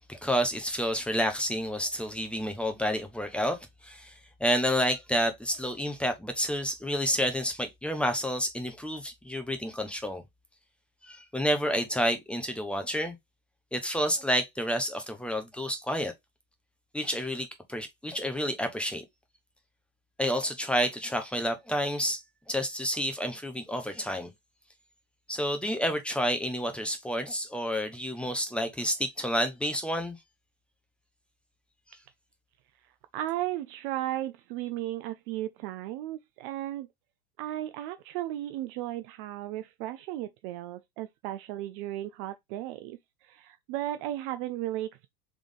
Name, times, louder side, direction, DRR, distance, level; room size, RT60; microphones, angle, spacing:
voice 1, 0.1-10.2 11.0-13.2 13.7-16.1 16.9-19.0 20.2-24.3 25.3-30.2, equal, 5° left, 0.8 m, -30 dB
voice 2, 33.1-36.9 37.4-45.1, right 14 dB, 40° right, 0.4 m, -35 dB
3.7 x 3.5 x 3.3 m
hypercardioid pair, 105°, 42 cm